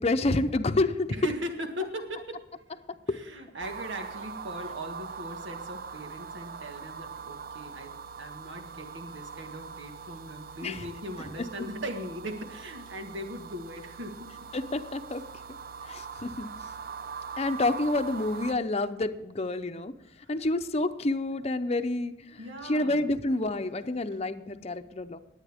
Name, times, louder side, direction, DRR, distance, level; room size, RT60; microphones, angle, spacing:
voice 1, 0.0-1.1 3.1-3.2 10.6-10.9 14.5-15.2 15.9-16.5 17.4-19.9 20.3-25.2, left 2 dB, 35° left, 9 dB, 0.7 m, -28 dB
voice 2, 1.1-2.6 3.1-14.3 20.2-20.3 22.4-23.1, equal, 90° right, 4 dB, 1.7 m, -39 dB
sound 1, 3.6-18.5, right 6 dB, 55° right, 0.7 m, -42 dB
20.5 x 9.0 x 3.6 m, 0.93 s
head